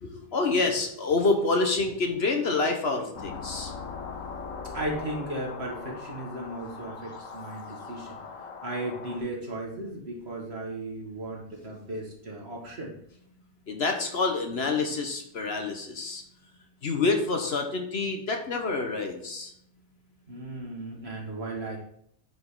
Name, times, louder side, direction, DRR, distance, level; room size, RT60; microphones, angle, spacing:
voice 1, 0.0-3.7 13.7-16.2 16.8-19.5, left 3 dB, 55° left, 4 dB, 1.1 m, -27 dB
sound 1, 3.1-9.2, left 4 dB, 85° left, 1.3 m, -40 dB
voice 2, 4.7-8.2 8.6-13.0 20.3-21.8, right 1 dB, 55° right, -2 dB, 2.0 m, -36 dB
9.4 x 5.1 x 3.8 m, 0.71 s
omnidirectional pair, 1.3 m